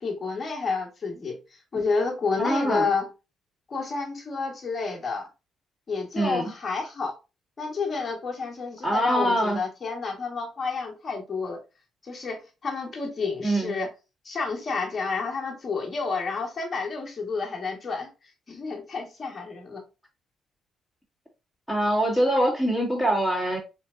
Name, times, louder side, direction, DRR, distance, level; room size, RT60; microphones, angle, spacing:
voice 1, 0.0-1.4 1.7-3.1 3.7-5.3 5.9-7.1 7.6-11.6 12.0-13.9 14.2-18.1 18.5-19.8, left 4 dB, 35° left, 1.6 m, -30 dB
voice 2, 2.4-2.9 6.2-6.5 8.8-9.6 13.4-13.7 21.7-23.6, right 1 dB, 5° right, 2.2 m, -24 dB
4.4 x 3.3 x 2.6 m
cardioid pair, 90°, 0 cm